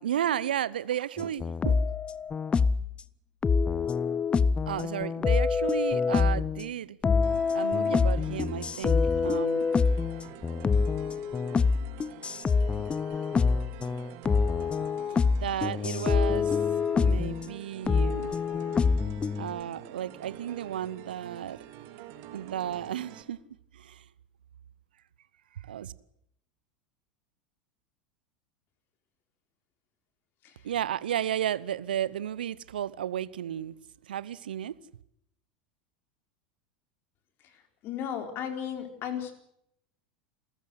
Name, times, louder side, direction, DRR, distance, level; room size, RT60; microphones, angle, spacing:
voice 1, 0.0-1.9 4.7-7.0 7.5-9.7 15.4-16.5 16.9-18.3 19.4-21.6 22.3-23.4 23.7-24.0 25.6-25.9 30.6-33.8 34.1-34.7, right 10 dB, 75° right, 0.8 m, -33 dB
sound 1, 1.2-2.9 3.4-6.7 7.0-17.5 17.9-19.5, left 5 dB, 20° left, 0.8 m, -26 dB
sound 2, 7.2-23.2, right 11 dB, 55° right, 3.2 m, -47 dB
voice 2, 37.8-39.3, left 9 dB, 45° left, 4.1 m, -34 dB
28.0 x 14.0 x 8.0 m
hypercardioid pair, 85°, 5 cm